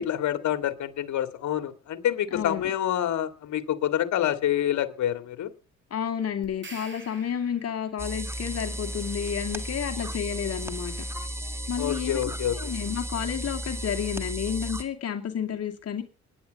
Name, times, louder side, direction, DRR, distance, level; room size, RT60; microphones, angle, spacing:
voice 1, 0.0-5.5 11.8-12.6, left 11 dB, 70° left, 11 dB, 2.1 m, -27 dB
voice 2, 2.3-2.7 5.9-10.9 11.7-12.2 12.5-16.0, left 8 dB, 55° left, 4 dB, 2.5 m, -31 dB
sound 1, 6.4-8.0, right 3 dB, 40° right, 6.3 m, -46 dB
sound 2, 8.0-14.8, right 1 dB, 10° right, 2.2 m, -34 dB
20.0 x 10.0 x 5.3 m, 0.37 s
cardioid pair, 90°, 30 cm